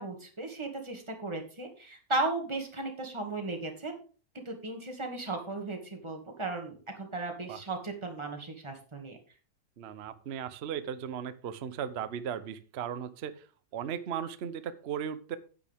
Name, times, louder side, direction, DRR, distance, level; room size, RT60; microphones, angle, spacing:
voice 1, 0.0-3.9 4.5-9.2, right 2 dB, 15° right, 3 dB, 2.0 m, -36 dB
voice 2, 9.8-13.5 13.7-15.4, right 8 dB, 50° right, 13 dB, 0.8 m, -37 dB
10.0 x 9.1 x 3.5 m, 0.37 s
omnidirectional pair, 1.9 m